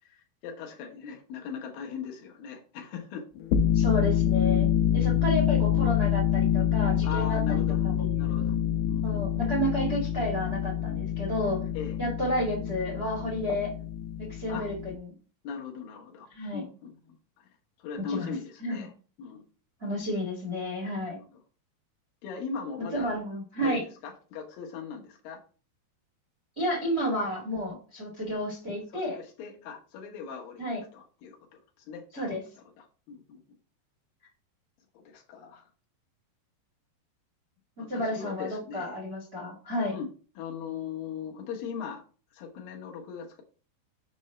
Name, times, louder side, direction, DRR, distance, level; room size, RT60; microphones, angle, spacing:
voice 1, 0.0-3.3 7.0-7.8 8.2-8.6 8.9-9.2 11.7-12.0 14.5-14.7 15.4-16.3 16.5-17.5 17.8-18.9 19.2-19.4 20.8-21.2 22.2-23.1 23.6-25.4 28.9-32.4 32.8-33.4 35.1-35.7 37.8-39.0 39.9-40.1 40.4-42.0 42.3-43.4, left 6 dB, 70° left, 0 dB, 2.3 m, -39 dB
sound 1, 3.4-14.9, left 10 dB, 85° left, 2.5 m, -26 dB
voice 2, 3.7-8.1 9.0-11.6 12.0-13.7 14.2-15.0 16.3-16.6 18.0-18.3 18.6-18.8 19.8-21.2 22.9-23.8 26.5-29.1 30.6-30.8 32.1-32.4 37.8-39.9, equal, 50° right, -3 dB, 0.7 m, -31 dB
6.9 x 5.3 x 3.2 m, 0.37 s
omnidirectional pair, 5.5 m